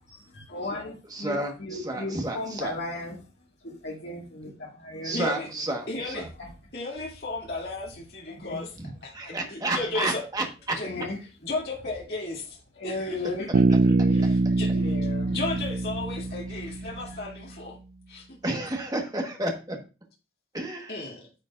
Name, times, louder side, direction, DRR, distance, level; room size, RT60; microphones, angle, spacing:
voice 1, 0.1-3.2 3.6-5.2 8.3-8.6 9.7-9.8 10.8-11.2 12.8-13.5 13.8-14.3 14.7-15.4, left 2 dB, 75° left, -4 dB, 2.1 m, -35 dB
voice 2, 1.1-2.8 5.0-6.3 8.8-10.8 18.4-19.8 20.5-21.0, right 2 dB, 20° right, 3 dB, 1.3 m, -31 dB
voice 3, 5.1-5.5 5.9-6.3 6.7-10.2 10.7-11.1 11.4-12.6 12.8-15.0 15.3-17.8 18.1-18.6 20.9-21.2, left 2 dB, 60° left, -3 dB, 2.6 m, -35 dB
Bass guitar, 13.5-17.2, right 3 dB, 50° right, 0.3 m, -24 dB
10.0 x 7.0 x 2.5 m, 0.32 s
head